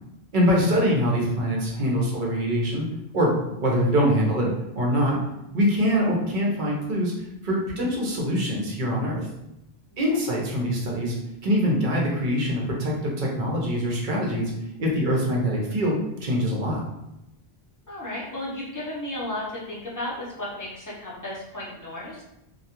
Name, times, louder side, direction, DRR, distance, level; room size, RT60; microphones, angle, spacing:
voice 1, 0.3-2.8 3.1-4.5 4.8-5.2 5.5-7.1 7.4-9.3 10.0-11.2 11.4-14.5 14.8-16.8, equal, 55° right, -2 dB, 0.7 m, -24 dB
voice 2, 17.9-22.2, left 1 dB, 20° left, -7 dB, 0.6 m, -34 dB
2.3 x 2.2 x 2.8 m, 0.89 s
omnidirectional pair, 1.0 m